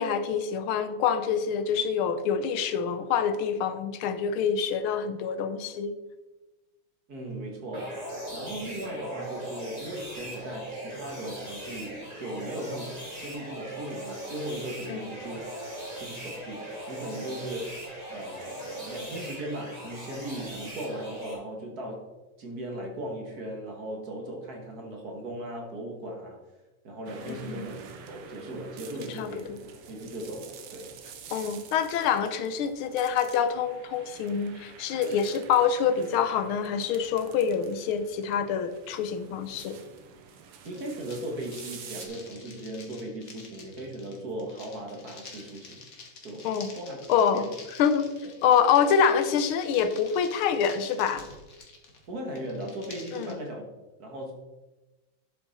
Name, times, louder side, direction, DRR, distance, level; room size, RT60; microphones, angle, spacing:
voice 1, 0.0-5.9 14.9-15.1 27.3-27.6 29.1-29.6 31.3-39.8 46.4-46.7 47.1-47.5 47.8-48.1 48.4-51.3 53.1-53.3, left 7 dB, 75° left, 11 dB, 1.6 m, -26 dB
voice 2, 7.1-15.7 16.0-17.8 18.1-22.1 22.4-26.4 26.8-27.8 28.1-29.5 29.9-30.9 40.6-45.8 46.2-47.5 52.1-53.7 54.0-54.3, right 1 dB, 45° right, 1 dB, 2.0 m, -38 dB
sound 1, 7.7-21.3, right 1 dB, 15° right, 2.4 m, -39 dB
sound 2, 27.1-42.1, right 7 dB, 85° right, 1.9 m, -48 dB
sound 3, 40.6-53.3, left 3 dB, 45° left, 1.7 m, -49 dB
11.0 x 6.1 x 4.2 m, 1.1 s
omnidirectional pair, 2.4 m